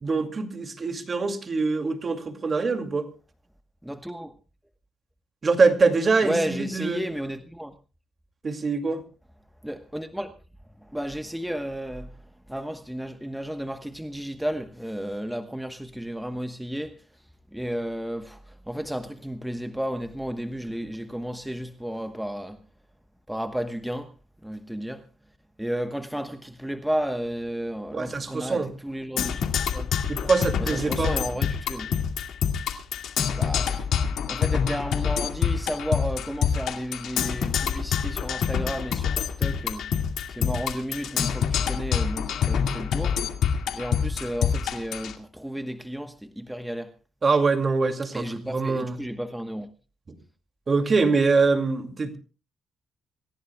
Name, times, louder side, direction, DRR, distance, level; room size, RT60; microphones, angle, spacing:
voice 1, 0.0-3.1 5.4-7.0 8.4-9.0 27.9-28.7 30.1-31.1 47.2-49.0 50.7-52.2, right 4 dB, 35° right, 2.4 m, -24 dB
voice 2, 3.8-4.3 6.2-7.7 9.6-10.3 10.8-22.6 23.3-24.1 24.4-25.1 25.6-29.9 30.2-30.3 30.6-31.9 33.3-33.9 34.3-39.8 40.3-43.2 43.7-46.9 48.1-49.7, equal, 5° right, 1.1 m, -33 dB
Percussion, 29.2-45.1, left 7 dB, 75° left, 2.1 m, -26 dB
26.5 x 16.0 x 2.3 m
cardioid pair, 90°, 0 cm